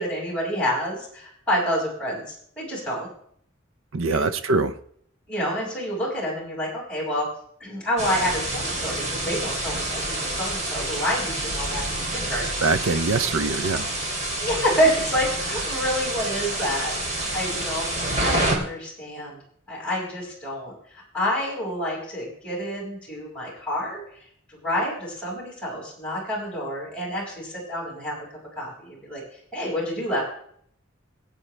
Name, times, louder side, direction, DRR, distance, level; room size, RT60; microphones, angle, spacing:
voice 1, 0.0-3.1 4.1-4.3 5.3-7.3 7.6-12.5 14.4-17.9 18.2-19.4 19.7-24.0 24.5-28.2 28.6-30.2, equal, 5° left, -4 dB, 5.6 m, -28 dB
voice 2, 3.9-4.8 12.6-13.9, right 3 dB, 85° right, 10 dB, 0.7 m, -23 dB
sound 1, 8.0-18.5, right 1 dB, 35° right, 3.0 m, -28 dB
22.0 x 8.7 x 3.3 m, 0.65 s
head